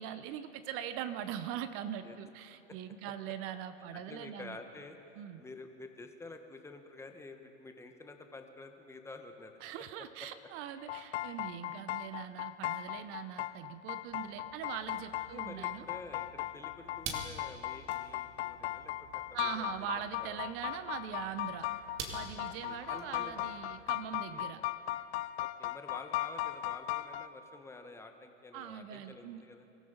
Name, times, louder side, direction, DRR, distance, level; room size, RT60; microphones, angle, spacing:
voice 1, 0.0-4.6 5.2-5.4 9.6-15.8 19.3-21.7 22.1-24.6 28.5-29.4, right 10 dB, 35° right, 12 dB, 0.8 m, -42 dB
voice 2, 3.9-9.6 10.2-10.3 15.3-19.7 20.2-20.4 22.3-23.5 24.3-24.5 25.4-29.7, left 3 dB, 5° left, 5 dB, 1.1 m, -49 dB
sound 1, 10.8-27.3, left 15 dB, 55° left, 0.5 m, -38 dB
sound 2, 14.0-24.5, right 4 dB, 60° right, 2.6 m, -49 dB
24.5 x 14.5 x 4.0 m, 2.9 s
hypercardioid pair, 120°, 38 cm